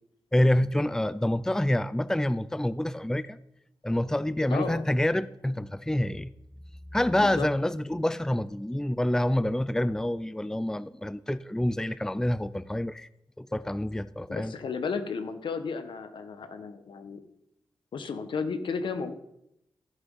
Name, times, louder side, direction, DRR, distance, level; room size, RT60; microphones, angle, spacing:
voice 1, 0.3-3.4 3.8-6.3 6.9-13.1 13.4-14.5, left 1 dB, 5° left, 16 dB, 0.5 m, -27 dB
voice 2, 4.5-4.8 7.1-7.5 14.3-17.2 17.9-19.1, left 5 dB, 75° left, 9 dB, 1.1 m, -33 dB
12.5 x 6.4 x 5.5 m, 0.81 s
cardioid pair, 50°, 8 cm